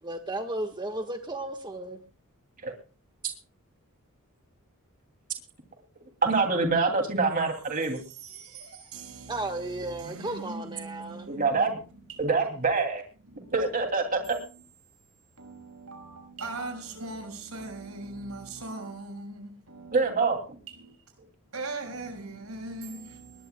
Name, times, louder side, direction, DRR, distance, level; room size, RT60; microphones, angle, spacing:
voice 1, 0.0-2.0 9.3-11.3, right 2 dB, 20° right, 1.4 m, -34 dB
voice 2, 6.2-8.0 11.3-11.8 12.2-13.0 13.5-14.2 19.9-20.4, right 4 dB, 40° right, 2.7 m, -25 dB
voice 3, 7.8-11.7 12.1-12.2 13.3-13.6 15.4-19.9 20.7-21.0 21.5-23.5, right 2 dB, 90° right, 6.2 m, -40 dB
21.0 x 20.0 x 2.3 m
head